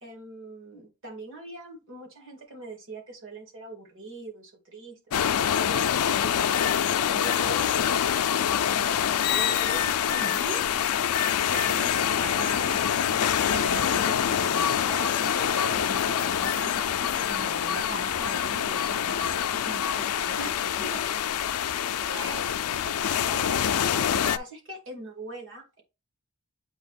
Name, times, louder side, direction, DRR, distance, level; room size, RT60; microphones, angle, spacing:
voice 1, 0.0-7.9 8.3-10.3 11.1-12.0 20.3-20.5 20.8-21.2 22.1-22.8 23.3-25.8, right 2 dB, 60° right, 2 dB, 2.4 m, -43 dB
sound 1, 5.1-24.4, left 9 dB, 80° left, 0.4 m, -25 dB
voice 2, 10.2-10.7 11.5-20.5 20.8-21.0, right 2 dB, 40° right, -1 dB, 1.7 m, -40 dB
8.0 x 2.9 x 4.1 m, 0.27 s
head